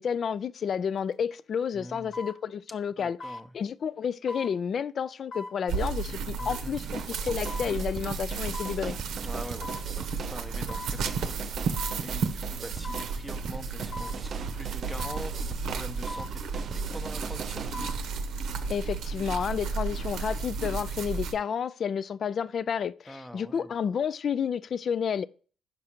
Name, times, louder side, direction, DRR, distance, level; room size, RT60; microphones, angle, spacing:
voice 1, 0.0-3.2 3.5-9.0 18.7-25.3, left 7 dB, 55° left, 0.3 m, -30 dB
sound 1, 1.0-1.1 2.1-2.4 3.2-3.4 4.3-4.5 5.3-5.6 6.4-6.6 7.5-7.7 8.5-8.8 9.6-9.9 10.7-10.9 11.8-12.0 12.8-13.1 13.9-14.2 15.0-15.3 16.1-16.3 17.5-18.0 18.4-18.5, left 2 dB, 80° left, 1.2 m, -39 dB
voice 2, 1.7-2.2 3.0-3.5 6.4-6.8 9.2-17.6 23.1-23.7, equal, 5° left, 0.7 m, -44 dB
sound 2, 5.7-21.3, right 5 dB, 80° right, 0.7 m, -33 dB
sound 3, 6.8-17.7, right 7 dB, 50° right, 0.4 m, -41 dB
5.9 x 4.9 x 4.3 m
cardioid pair, 90°, 0 cm